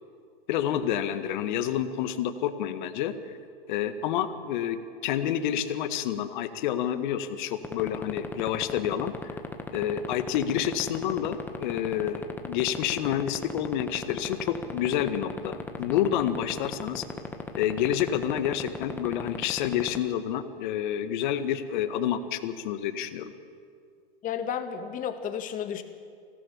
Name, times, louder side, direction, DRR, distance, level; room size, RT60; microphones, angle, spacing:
voice 1, 0.5-3.3 3.7-9.2 9.7-17.0 17.5-23.3, left 10 dB, 55° left, 10 dB, 1.8 m, -29 dB
sound 1, 7.6-20.0, left 4 dB, 5° left, 1.7 m, -33 dB
voice 2, 24.2-25.8, left 8 dB, 25° left, 8 dB, 2.0 m, -32 dB
25.0 x 17.5 x 7.2 m, 2.2 s
hypercardioid pair, 120°, 29 cm